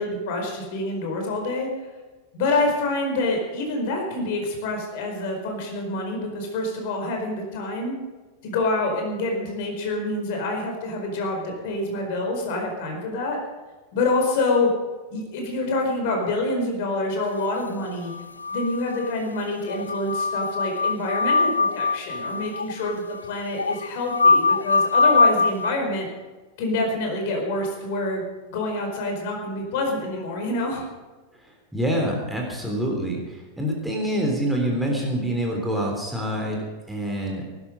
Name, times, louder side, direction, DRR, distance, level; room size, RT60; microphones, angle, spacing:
voice 1, 0.0-1.7 2.3-7.9 8.4-13.4 13.9-14.7 15.1-18.1 18.5-26.1 26.6-28.2 28.5-30.8, left 2 dB, 50° left, 2 dB, 4.7 m, -26 dB
sound 1, 18.1-19.1 19.4-19.5 19.7-25.7, left 4 dB, 75° left, 0.4 m, -22 dB
voice 2, 31.7-37.4, right 1 dB, 5° right, -1 dB, 3.5 m, -26 dB
19.0 x 11.5 x 5.3 m, 1.2 s
figure-of-eight pair, 90°, 0 cm